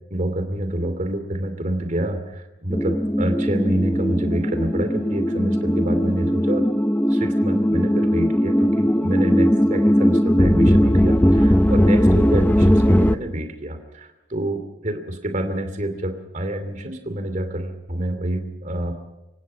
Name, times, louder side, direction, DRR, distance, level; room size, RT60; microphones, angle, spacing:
voice 1, 0.1-6.6 7.1-18.9, right 1 dB, 40° right, 8 dB, 2.8 m, -27 dB
sound 1, 2.7-13.2, equal, 10° left, 0.6 m, -19 dB
28.0 x 16.5 x 5.8 m, 1.0 s
head